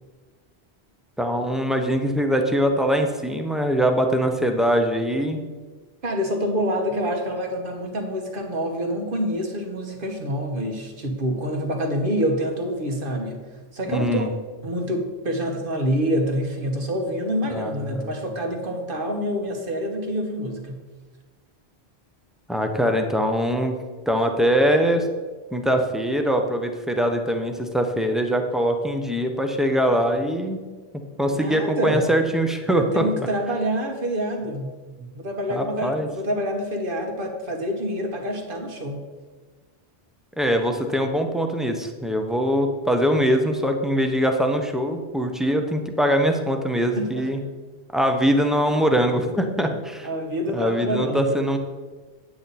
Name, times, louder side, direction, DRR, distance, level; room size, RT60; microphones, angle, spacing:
voice 1, 1.2-5.4 13.9-14.3 17.5-18.1 22.5-23.7 24.1-25.1 25.5-30.6 31.2-33.1 35.0-35.1 35.5-36.1 40.4-47.4 47.9-50.1 50.5-51.6, equal, ahead, 4 dB, 0.7 m, -22 dB
voice 2, 6.0-13.4 13.7-20.8 31.1-32.2 32.7-34.7 35.1-39.0 46.9-47.3 50.0-51.4, equal, 55° right, 3 dB, 1.5 m, -27 dB
9.3 x 8.5 x 4.2 m, 1.4 s
omnidirectional pair, 1.1 m